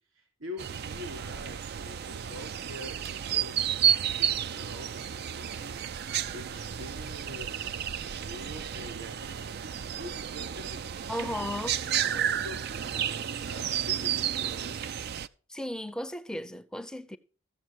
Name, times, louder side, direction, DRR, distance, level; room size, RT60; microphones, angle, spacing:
voice 1, 0.1-11.3 11.7-14.8, left 1 dB, 75° right, 3.5 m, -45 dB
sound 1, 0.6-15.3, right 9 dB, 50° right, 0.4 m, -32 dB
voice 2, 11.1-11.7 15.5-17.2, left 1 dB, 5° left, 0.6 m, -35 dB
14.5 x 7.3 x 4.6 m
head